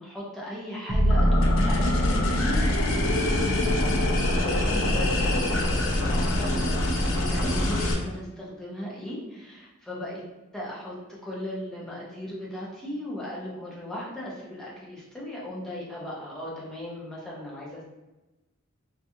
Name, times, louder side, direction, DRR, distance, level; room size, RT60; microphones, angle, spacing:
voice 1, 0.0-3.3 4.4-10.2 10.5-11.0 11.2-17.8, left 1 dB, 5° left, -6 dB, 0.7 m, -37 dB
sound 1, 0.9-5.1, equal, 45° right, 0.7 m, -27 dB
sound 2, 1.1-7.9, left 1 dB, 70° left, 0.5 m, -25 dB
2.9 x 2.4 x 2.7 m, 1.0 s
head